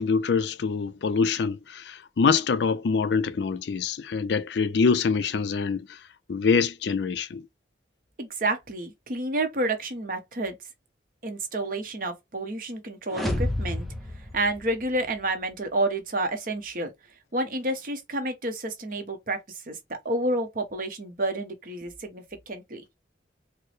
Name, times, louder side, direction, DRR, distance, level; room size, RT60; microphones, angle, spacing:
voice 1, 0.0-6.0 6.3-7.4, left 5 dB, 70° left, 0.4 m, -25 dB
voice 2, 8.2-10.5 11.2-13.9 14.3-16.9 17.3-19.8 20.0-22.8, right 2 dB, 50° right, 0.8 m, -29 dB
sound 1, 13.1-15.2, left 1 dB, ahead, 0.6 m, -30 dB
4.4 x 2.0 x 3.1 m
head